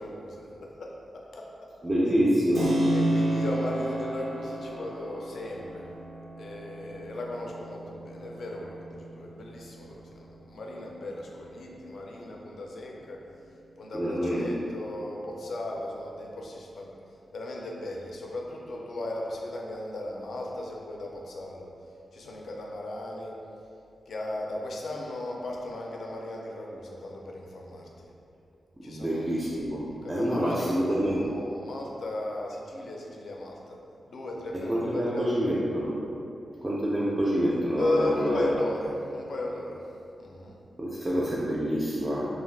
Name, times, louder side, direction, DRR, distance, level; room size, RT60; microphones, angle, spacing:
voice 1, 0.0-1.7 2.9-5.9 6.4-13.2 13.8-16.9 17.3-21.7 22.1-23.4 24.1-28.1 28.8-29.2 30.0-33.8 34.1-35.5 37.8-39.8 40.2-40.6, left 1 dB, 65° left, -1 dB, 0.4 m, -36 dB
voice 2, 1.8-2.7 13.9-14.5 28.8-31.3 34.5-35.9 36.6-38.4 40.8-42.3, equal, 20° right, -8 dB, 0.3 m, -27 dB
Keyboard (musical), 2.5-11.1, right 1 dB, 80° right, 0.5 m, -32 dB
2.4 x 2.3 x 3.2 m, 2.6 s
wide cardioid pair, 160°, 0 cm